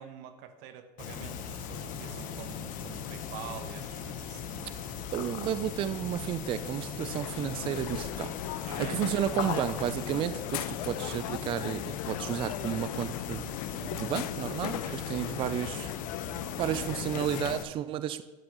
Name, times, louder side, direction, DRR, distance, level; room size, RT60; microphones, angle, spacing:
voice 1, 0.0-4.7 8.7-9.0 9.5-9.8 14.6-15.0 15.4-15.5, right 8 dB, 55° right, 8 dB, 1.1 m, -46 dB
sound 1, 1.0-17.6, left 7 dB, 40° left, 1.0 m, -38 dB
voice 2, 5.1-8.3 8.6-13.5 13.8-15.9 16.6-18.2, right 11 dB, 25° right, 14 dB, 0.4 m, -32 dB
Crowd, 7.0-17.6, left 14 dB, 65° left, 0.5 m, -39 dB
11.5 x 7.6 x 3.0 m, 1.2 s
hypercardioid pair, 115°, 21 cm